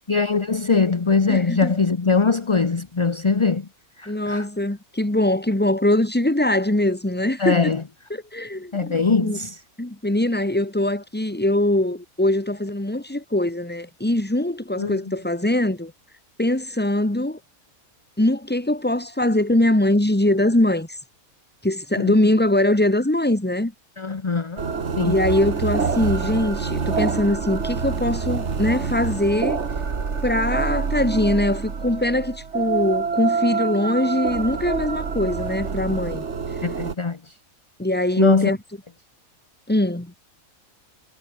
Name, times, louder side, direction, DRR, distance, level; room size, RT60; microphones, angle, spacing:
voice 1, 0.1-3.7 4.0-4.5 7.4-7.8 8.7-9.6 14.8-15.0 22.0-22.2 24.0-24.6 25.0-25.2 36.6-37.3 38.2-38.5, left 4 dB, 25° left, 0.7 m, -21 dB
voice 2, 1.3-1.7 4.1-7.7 8.1-9.4 9.8-15.9 16.4-17.4 18.2-21.0 21.6-23.7 25.0-29.6 30.2-36.2 37.8-38.6 39.7-40.1, left 1 dB, 5° left, 1.7 m, -22 dB
sound 1, 24.6-36.9, right 5 dB, 50° right, 2.1 m, -26 dB
omnidirectional pair, 1.5 m